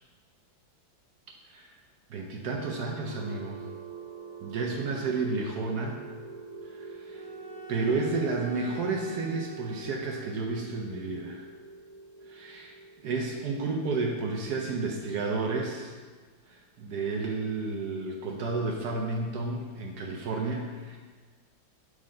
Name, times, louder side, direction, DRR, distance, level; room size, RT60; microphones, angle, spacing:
voice 1, 2.1-3.6 4.4-6.0 6.6-7.3 7.7-11.4 12.3-12.7 13.0-15.9 16.5-21.0, right 3 dB, 70° right, 0 dB, 1.0 m, -31 dB
sound 1, 2.6-16.5, right 4 dB, 40° left, 0.5 m, -46 dB
Bowed string instrument, 7.1-10.6, right 1 dB, 30° right, 1.7 m, -47 dB
5.6 x 4.8 x 3.7 m, 1.5 s
omnidirectional pair, 2.2 m